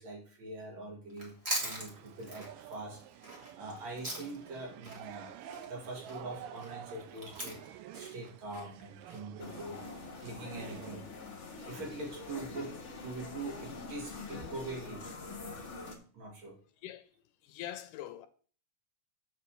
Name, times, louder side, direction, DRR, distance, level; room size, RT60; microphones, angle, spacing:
voice 1, 0.0-1.3 1.6-9.8 10.2-11.1 11.6-12.7 13.0-15.1 15.5-15.6 16.1-16.6, right 2 dB, 55° right, 3.3 m, -43 dB
Chewing mastication, 1.1-4.5 4.8-9.2, equal, 25° right, 1.8 m, -41 dB
sound 1, 1.6-10.9, right 10 dB, 80° right, 2.2 m, -50 dB
sound 2, 9.4-15.9, left 3 dB, 45° left, 0.9 m, -45 dB
voice 2, 16.8-17.1 17.4-18.3, left 12 dB, 80° left, 2.1 m, -43 dB
6.6 x 6.5 x 6.8 m
omnidirectional pair, 4.0 m